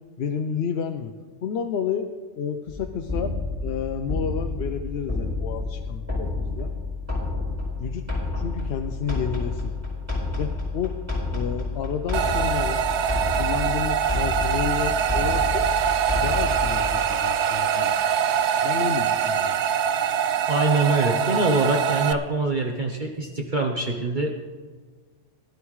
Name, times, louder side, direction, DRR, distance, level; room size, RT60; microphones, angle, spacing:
voice 1, 0.2-1.1 1.4-2.1 2.3-3.3 3.6-6.7 7.8-8.0 8.4-9.7 10.4-10.9 11.3-12.8 13.4-15.7 16.2-18.0 18.6-19.5, left 7 dB, 60° left, 4 dB, 0.8 m, -30 dB
sound 1, 2.7-17.1, left 3 dB, 10° right, 4.4 m, -30 dB
sound 2, 12.1-22.1, right 8 dB, 70° right, 0.9 m, -24 dB
voice 2, 20.5-24.4, right 2 dB, 45° right, 1 dB, 0.9 m, -24 dB
19.5 x 11.5 x 3.1 m, 1.5 s
omnidirectional pair, 1.3 m